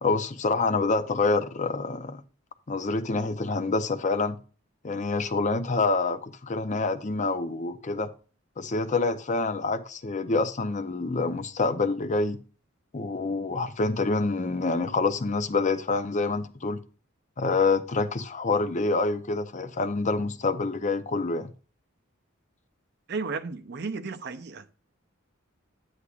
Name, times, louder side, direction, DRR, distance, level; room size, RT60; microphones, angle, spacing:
voice 1, 0.0-2.2 2.7-4.4 4.8-8.1 8.6-12.4 12.9-16.8 17.4-21.5, left 3 dB, 35° left, 0.6 m, -27 dB
voice 2, 23.1-24.6, right 4 dB, 50° right, 0.6 m, -33 dB
9.8 x 8.0 x 2.4 m
head